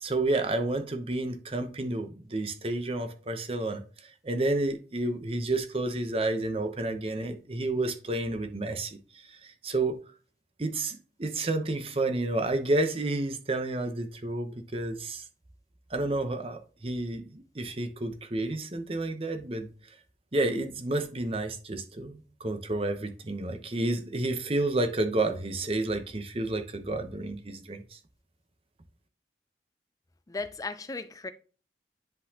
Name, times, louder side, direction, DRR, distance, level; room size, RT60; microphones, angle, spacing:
voice 1, 0.0-10.0 10.6-15.2 15.9-19.7 20.3-28.0, right 2 dB, 30° right, 0.7 m, -30 dB
voice 2, 30.3-31.3, left 3 dB, 20° left, 0.4 m, -36 dB
10.0 x 4.0 x 2.8 m
head